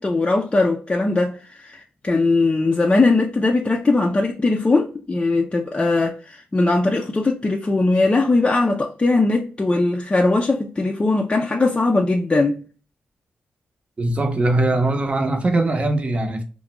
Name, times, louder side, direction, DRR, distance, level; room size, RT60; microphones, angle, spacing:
voice 1, 0.0-12.6, left 3 dB, 25° left, 0.4 m, -20 dB
voice 2, 14.0-16.4, right 2 dB, 35° right, 0.7 m, -21 dB
2.4 x 2.2 x 2.9 m
cardioid pair, 70°, 4 cm